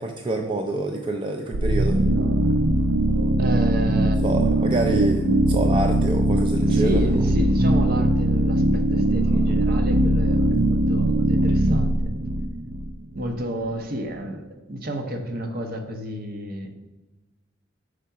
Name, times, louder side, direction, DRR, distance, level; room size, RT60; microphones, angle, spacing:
voice 1, 0.0-2.0 4.2-7.2, right 2 dB, 25° right, 3 dB, 0.4 m, -27 dB
sound 1, 1.5-13.3, right 1 dB, 90° right, 0.5 m, -20 dB
voice 2, 3.4-4.2 6.7-12.1 13.1-16.7, right 1 dB, 50° right, 5 dB, 0.7 m, -31 dB
5.0 x 4.6 x 5.6 m, 1.1 s
head